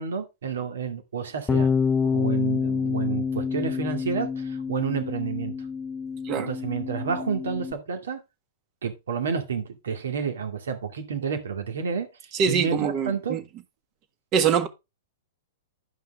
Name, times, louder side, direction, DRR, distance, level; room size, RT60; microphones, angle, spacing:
voice 1, 0.0-1.7 2.0-5.5 6.4-8.2 8.8-12.1 12.5-13.4, right 6 dB, 75° right, 2.2 m, -30 dB
Bass guitar, 1.5-7.7, left 5 dB, 15° left, 0.6 m, -27 dB
voice 2, 12.3-13.4 14.3-14.7, right 7 dB, 35° right, 1.5 m, -23 dB
10.5 x 5.6 x 3.6 m
hypercardioid pair, 110°, 0 cm